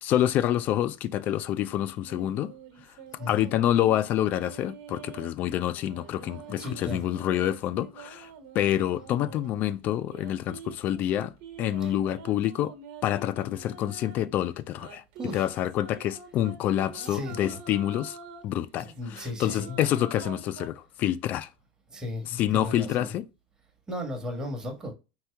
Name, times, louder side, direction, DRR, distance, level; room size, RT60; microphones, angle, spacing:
voice 1, 0.0-2.5 3.3-8.3 8.5-11.3 11.6-12.7 13.0-15.0 15.3-18.2 18.4-21.5 22.2-23.3, left 12 dB, 45° left, 0.4 m, -27 dB
sound 1, 1.1-5.3 5.7-9.5 10.0-14.3 14.8-18.4 18.9-20.7, right 6 dB, 55° right, 1.1 m, -46 dB
voice 2, 6.6-7.1 15.2-15.4 17.0-17.6 18.8-19.8 21.9-23.1 23.9-24.9, left 1 dB, 15° right, 1.4 m, -36 dB
4.4 x 3.0 x 3.4 m
supercardioid pair, 105°, 4 cm